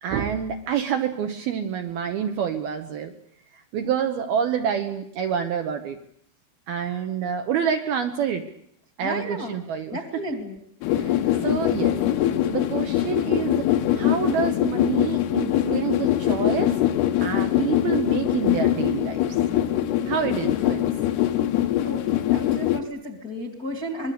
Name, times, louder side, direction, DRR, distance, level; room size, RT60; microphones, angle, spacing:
voice 1, 0.0-3.1 3.5-6.0 6.7-8.5 9.0-10.0 10.9-11.2 11.4-11.9 12.5-16.7 17.2-19.2 20.0-20.9, right 8 dB, 70° right, 5 dB, 2.5 m, -27 dB
voice 2, 9.0-9.5 9.9-10.6 11.2-11.6 21.8-22.0 22.3-24.1, equal, 30° left, 5 dB, 1.7 m, -33 dB
sound 1, 10.8-22.8, left 12 dB, 70° left, 2.7 m, -23 dB
25.0 x 21.5 x 8.3 m, 0.68 s
omnidirectional pair, 5.6 m